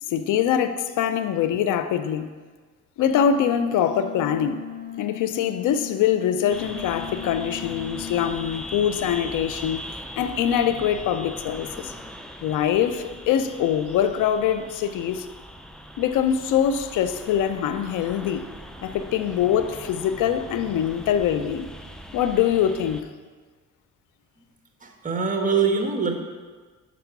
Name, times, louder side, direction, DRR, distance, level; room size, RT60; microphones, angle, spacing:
voice 1, 0.0-2.3 3.0-4.6 5.0-11.9 12.4-15.3 16.0-18.5 18.8-21.7 22.1-23.1, left 9 dB, 80° left, 10 dB, 0.6 m, -23 dB
sound 1, 3.1-8.3, left 9 dB, 30° left, 1.5 m, -37 dB
sound 2, 6.5-23.0, equal, ahead, 0.5 m, -40 dB
voice 2, 24.8-26.2, right 5 dB, 25° right, 3 dB, 1.2 m, -24 dB
5.9 x 4.9 x 6.0 m, 1.5 s
cardioid pair, 90°, 30 cm